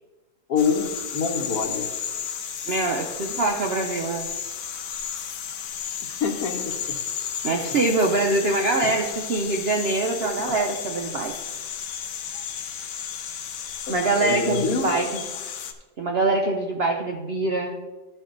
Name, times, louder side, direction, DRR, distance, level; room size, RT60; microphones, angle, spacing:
voice 1, 0.5-1.9 6.0-7.0 7.7-7.8 8.8-8.9 13.9-14.0 14.2-14.9, left 5 dB, 60° left, 4 dB, 1.3 m, -26 dB
sound 1, 0.6-15.7, left 8 dB, 80° left, 1.3 m, -33 dB
voice 2, 2.7-4.3 7.4-11.3 13.9-15.2 16.0-17.7, right 2 dB, 60° right, 2 dB, 0.6 m, -24 dB
13.5 x 4.5 x 3.8 m, 1.3 s
omnidirectional pair, 1.8 m